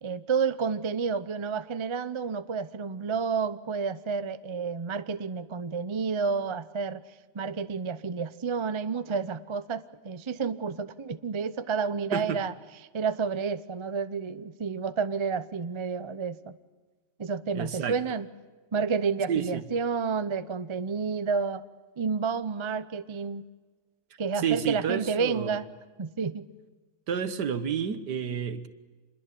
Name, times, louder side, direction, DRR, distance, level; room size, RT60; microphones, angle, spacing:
voice 1, 0.0-7.0 7.3-12.5 12.9-16.5 17.2-18.3 18.7-21.6 22.0-23.4 24.2-25.7 26.0-26.5, right 5 dB, 45° right, 14 dB, 0.3 m, -30 dB
voice 2, 17.5-18.0 19.3-19.6 24.4-25.6 27.1-28.7, right 7 dB, 70° right, 12 dB, 1.9 m, -30 dB
27.0 x 21.5 x 8.5 m, 1.3 s
omnidirectional pair, 1.8 m